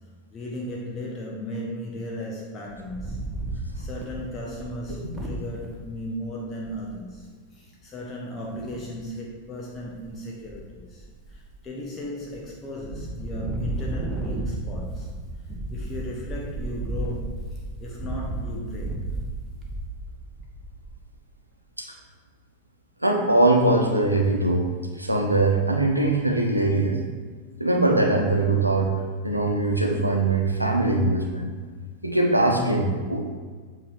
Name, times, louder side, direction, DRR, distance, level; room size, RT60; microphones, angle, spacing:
voice 1, 0.3-15.1 15.7-19.1, left 1 dB, 25° left, -3 dB, 0.8 m, -36 dB
Wind, 2.7-5.8 6.4-6.5 6.6-7.0 8.5-9.1 9.6-10.1 10.4-11.6 12.0-12.5 12.8-21.0, right 2 dB, 10° right, 0.9 m, -33 dB
voice 2, 23.0-24.7 25.0-27.0 27.6-28.9 29.2-31.5 32.0-33.2, right 2 dB, 85° right, 1 dB, 0.7 m, -21 dB
7.4 x 3.0 x 4.7 m, 1.5 s
figure-of-eight pair, 90°, 0 cm